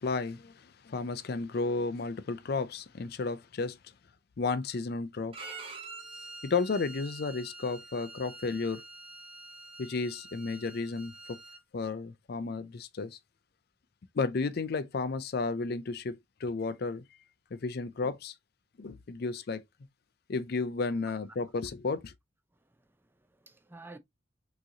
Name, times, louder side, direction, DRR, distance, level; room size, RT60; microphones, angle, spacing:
voice 1, 0.0-3.8 4.4-5.3 6.4-8.8 9.8-11.4 11.7-13.2 14.1-17.0 17.5-18.4 18.8-19.6 20.3-22.1, left 4 dB, 55° left, 0.4 m, -33 dB
Bowed string instrument, 5.3-11.6, right 3 dB, 30° right, 1.2 m, -47 dB
voice 2, 22.5-24.0, right 2 dB, 10° right, 0.5 m, -52 dB
6.2 x 3.0 x 2.7 m
head